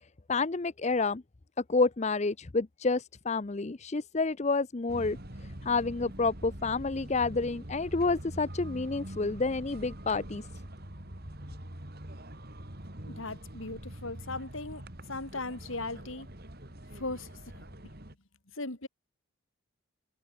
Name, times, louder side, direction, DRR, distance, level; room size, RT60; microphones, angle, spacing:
voice 1, 0.3-1.2 1.7-5.2 5.6-10.4, left 3 dB, 30° left, 0.6 m, -29 dB
sound 1, 4.9-18.1, right 1 dB, 45° right, 3.5 m, -44 dB
voice 2, 13.1-14.8 15.1-16.3 17.0-17.7 18.6-18.9, left 2 dB, 65° left, 3.4 m, -38 dB
head